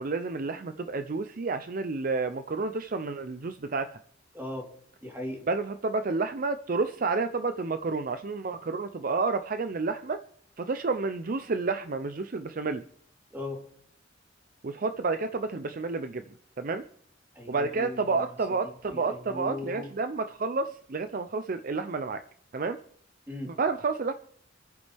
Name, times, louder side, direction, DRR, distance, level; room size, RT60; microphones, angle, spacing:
voice 1, 0.0-3.9 5.5-10.2 10.6-12.8 14.6-16.2 16.6-16.8 17.5-22.2 22.5-22.8 23.5-24.1, right 4 dB, 50° right, 9 dB, 0.6 m, -30 dB
voice 2, 4.3-4.7 5.0-5.4 13.3-13.6 17.3-18.6 18.9-19.9 23.3-23.5, left 1 dB, 10° right, -2 dB, 3.5 m, -38 dB
27.0 x 9.7 x 3.4 m, 0.65 s
head